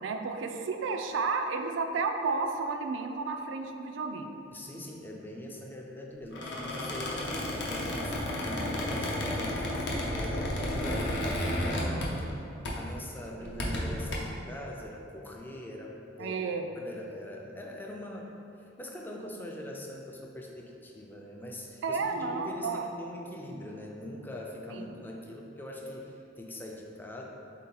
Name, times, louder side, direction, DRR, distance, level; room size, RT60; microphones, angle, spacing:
voice 1, 0.0-4.3 13.4-14.0 16.2-16.7 21.8-22.9 24.7-25.0, right 4 dB, 75° right, 5 dB, 0.3 m, -32 dB
voice 2, 4.5-16.4 16.8-27.2, left 1 dB, 10° left, 0 dB, 0.3 m, -42 dB
Squeak, 6.3-12.4 12.6-12.9 13.4-14.1, left 1 dB, 65° left, 0.7 m, -32 dB
3.9 x 2.8 x 3.9 m, 2.8 s
head